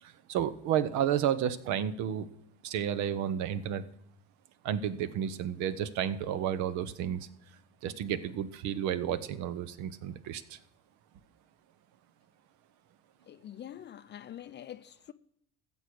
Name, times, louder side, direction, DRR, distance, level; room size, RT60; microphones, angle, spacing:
voice 1, 0.0-2.3 2.6-3.8 4.6-7.3 7.8-10.6, right 9 dB, 55° right, 0.9 m, -31 dB
voice 2, 13.3-15.1, left 11 dB, 30° left, 0.5 m, -45 dB
15.0 x 7.1 x 6.1 m
figure-of-eight pair, 60°, 35 cm